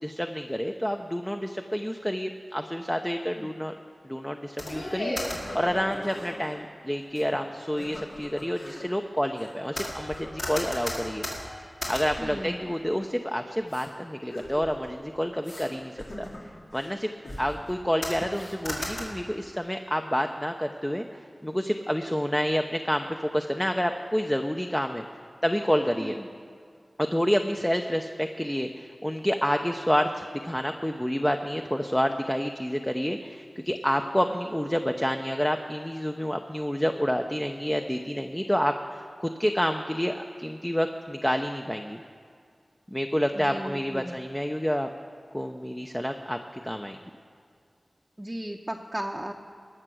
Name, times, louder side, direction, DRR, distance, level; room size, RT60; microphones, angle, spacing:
voice 1, 0.0-3.7 4.0-11.2 11.9-16.3 16.7-17.1 17.4-25.1 25.4-26.2 27.0-42.0 42.9-44.9 45.3-47.0, equal, 10° left, 5 dB, 0.6 m, -28 dB
sound 1, 4.6-6.6 7.2-7.3 7.7-8.8 9.4-13.2 13.7-13.9 14.3-15.0 15.4-15.7 16.0-16.9 17.2-17.7 18.0-19.0, left 1 dB, 80° left, 2.6 m, -36 dB
voice 2, 12.2-12.6 26.0-26.3 43.3-44.1 48.2-49.3, right 1 dB, 20° right, 2 dB, 0.8 m, -36 dB
20.0 x 6.8 x 6.2 m, 2.2 s
wide cardioid pair, 45°, 0 cm